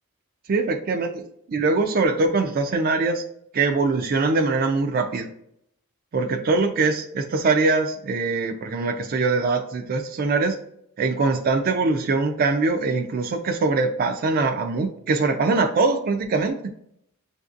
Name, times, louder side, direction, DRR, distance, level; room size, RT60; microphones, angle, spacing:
voice 1, 0.5-1.1 1.5-3.2 3.5-5.3 6.1-10.6 11.0-16.6, right 3 dB, 40° right, 5 dB, 0.3 m, -22 dB
5.7 x 2.6 x 2.4 m, 0.72 s
head